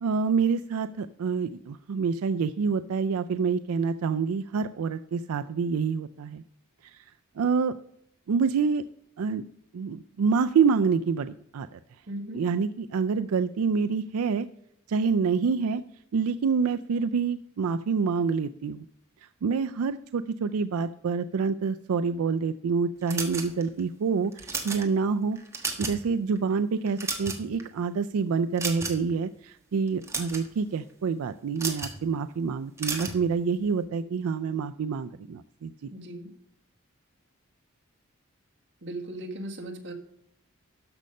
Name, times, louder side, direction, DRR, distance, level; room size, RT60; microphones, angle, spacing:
voice 1, 0.0-6.4 6.8-7.0 7.4-7.7 8.3-8.8 9.2-9.4 9.7-11.8 12.3-14.5 14.9-15.8 16.1-18.8 19.4-25.4 25.8-35.9, right 5 dB, 90° right, 11 dB, 0.4 m, -27 dB
voice 2, 12.1-12.5 35.9-36.3 38.8-39.9, right 1 dB, 55° right, 1 dB, 1.7 m, -37 dB
sound 1, 23.1-23.8 24.3-24.8 25.4-26.0 26.4-26.5 26.9-27.6 28.6-29.1 29.9-30.5 31.6-32.0 32.8-33.2, right 4 dB, 15° right, 1.3 m, -32 dB
13.0 x 5.4 x 5.3 m, 0.72 s
head